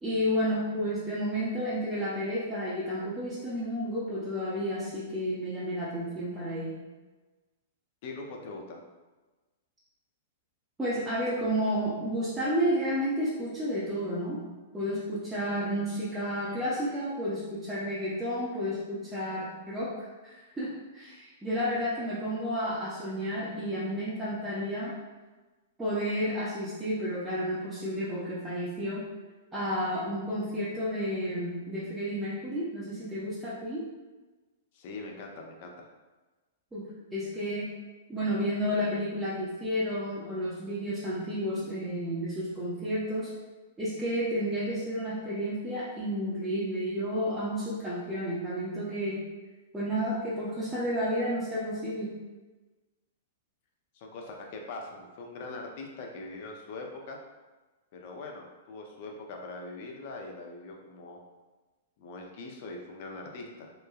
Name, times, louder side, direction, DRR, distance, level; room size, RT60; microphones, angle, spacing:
voice 1, 0.0-6.8 10.8-14.4 14.7-24.9 25.8-29.0 29.5-33.8 36.7-36.8 37.1-37.7 38.1-43.3 43.8-49.2 49.7-52.2, equal, 10° right, -10 dB, 0.6 m, -31 dB
voice 2, 8.0-8.8 34.7-35.9 53.9-57.2 57.9-61.2 62.0-63.7, left 3 dB, 50° left, 1 dB, 0.5 m, -42 dB
3.0 x 2.2 x 2.3 m, 1.2 s
hypercardioid pair, 110°, 0 cm